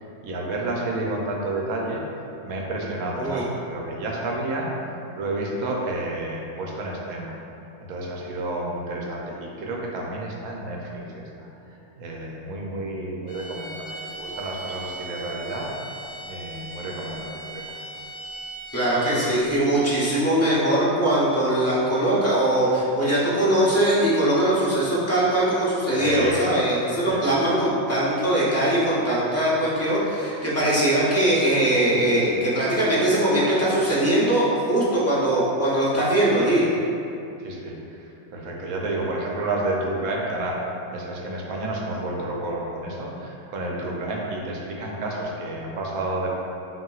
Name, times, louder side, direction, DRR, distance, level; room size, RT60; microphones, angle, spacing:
voice 1, 0.2-2.0 2.4-4.7 5.2-7.4 7.8-11.5 12.0-15.7 16.3-18.0 25.9-26.7 27.1-27.2 37.4-40.6 40.9-46.3, right 2 dB, 70° right, -2 dB, 1.1 m, -30 dB
sound 1, 13.3-19.5, right 2 dB, 75° left, 1.1 m, -38 dB
voice 2, 18.7-36.7, right 1 dB, 15° left, -9 dB, 0.5 m, -21 dB
5.6 x 2.9 x 2.4 m, 2.7 s
omnidirectional pair, 1.6 m